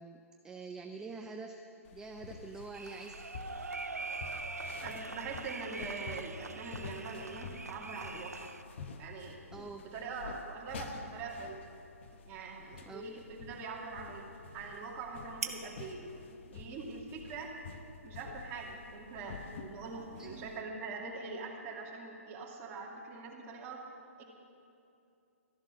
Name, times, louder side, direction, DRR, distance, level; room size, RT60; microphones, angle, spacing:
voice 1, 0.0-1.6 1.9-3.2 9.5-9.8 12.9-13.0 20.2-21.0, right 4 dB, 5° right, 4 dB, 0.5 m, -46 dB
sound 1, 1.9-20.6, left 5 dB, 50° left, 0.9 m, -49 dB
sound 2, 2.7-8.6, right 3 dB, 90° right, 0.6 m, -43 dB
voice 2, 4.8-8.5 9.0-11.6 12.2-14.3 14.5-16.2 16.5-17.5 18.0-23.8 24.2-24.3, right 4 dB, 25° right, -2 dB, 2.1 m, -43 dB
sound 3, 11.1-18.8, right 5 dB, 70° right, 1.4 m, -50 dB
13.0 x 11.0 x 6.2 m, 2.7 s
figure-of-eight pair, 135°, 8 cm